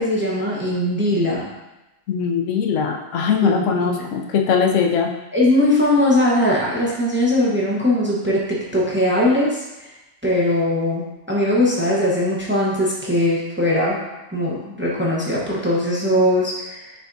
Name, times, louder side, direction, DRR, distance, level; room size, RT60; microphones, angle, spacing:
voice 1, 0.0-1.5 3.4-4.2 5.3-9.9 10.2-14.0 14.3-16.9, left 1 dB, 10° right, -5 dB, 0.6 m, -20 dB
voice 2, 2.1-5.1, left 6 dB, 70° left, 2 dB, 0.9 m, -20 dB
5.8 x 3.5 x 2.6 m, 0.99 s
omnidirectional pair, 1.4 m